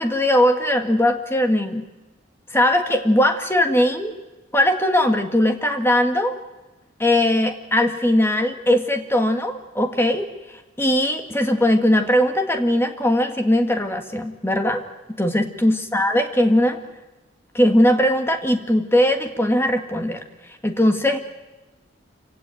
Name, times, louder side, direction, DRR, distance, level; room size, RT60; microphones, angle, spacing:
voice 1, 0.0-1.8 2.5-4.2 4.5-6.4 7.0-14.8 15.2-16.8 17.5-20.2 20.6-21.2, left 1 dB, 10° left, 6 dB, 1.9 m, -19 dB
27.5 x 17.0 x 9.3 m, 1.1 s
head